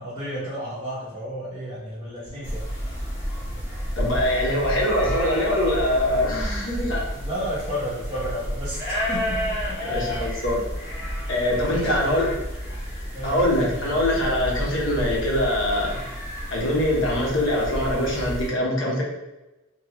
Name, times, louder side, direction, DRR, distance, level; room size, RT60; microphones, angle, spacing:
voice 1, 0.0-3.1 7.1-9.7 11.0-11.3 11.6-12.4 13.1-14.0, equal, 25° right, -11 dB, 0.8 m, -33 dB
sound 1, 2.4-18.5, equal, 15° left, 1.0 m, -31 dB
voice 2, 4.0-7.0 9.8-10.6 11.3-12.3 13.2-16.0 16.5-19.0, left 1 dB, 65° left, -2 dB, 0.8 m, -23 dB
3.0 x 2.3 x 2.9 m, 1.0 s
head